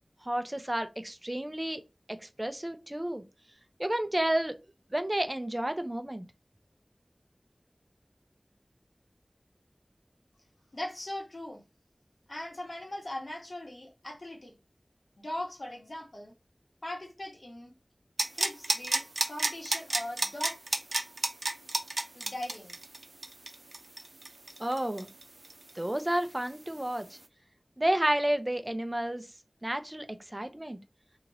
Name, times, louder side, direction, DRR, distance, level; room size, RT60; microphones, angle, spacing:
voice 1, 0.2-1.8 2.1-3.2 3.8-4.5 4.9-6.3 24.6-25.1 25.7-27.1 27.8-29.3 29.6-30.8, right 1 dB, 25° right, 0.6 m, -31 dB
voice 2, 10.7-11.6 12.3-14.5 15.2-16.3 16.8-17.7 18.3-20.6 21.6-21.7 22.1-22.8, left 1 dB, 70° left, 1.2 m, -40 dB
sound 1, 18.2-25.7 26.0-26.1, right 2 dB, 90° right, 0.5 m, -30 dB
2.9 x 2.5 x 4.0 m
wide cardioid pair, 50°, 0 cm